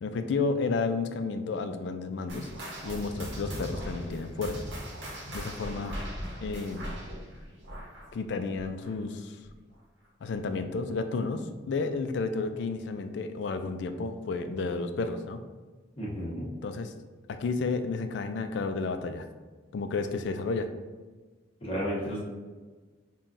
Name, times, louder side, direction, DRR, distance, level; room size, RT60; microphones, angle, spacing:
voice 1, 0.0-2.5 2.8-4.6 5.3-6.0 6.4-6.9 8.1-9.4 10.2-15.4 16.6-16.9 17.3-19.3 19.7-20.7, left 4 dB, 70° left, 8 dB, 0.3 m, -31 dB
sound 1, 2.3-9.2 9.4-9.7 10.3-10.4 11.2-11.3, equal, 70° right, 0.8 m, -39 dB
voice 2, 16.0-16.5 21.6-22.2, equal, 30° left, -5 dB, 1.0 m, -32 dB
5.5 x 2.3 x 2.5 m, 1.3 s
head